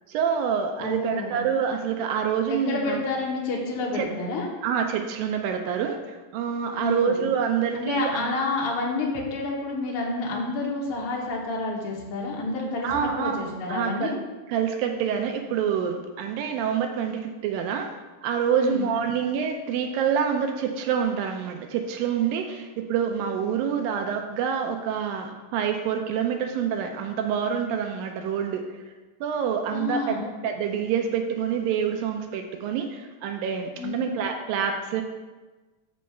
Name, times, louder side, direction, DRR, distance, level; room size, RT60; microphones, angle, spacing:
voice 1, 0.1-3.0 3.9-4.1 4.6-8.3 12.8-13.4 13.7-14.1 14.5-17.9 18.2-28.8 29.2-35.0, right 7 dB, 80° right, 5 dB, 2.1 m, -27 dB
voice 2, 0.8-1.4 2.7-4.5 6.7-7.2 7.7-14.1 18.6-18.9 29.7-30.3 33.8-34.1, left 2 dB, 65° left, -2 dB, 1.4 m, -29 dB
5.5 x 5.3 x 6.7 m, 1.2 s
omnidirectional pair, 4.4 m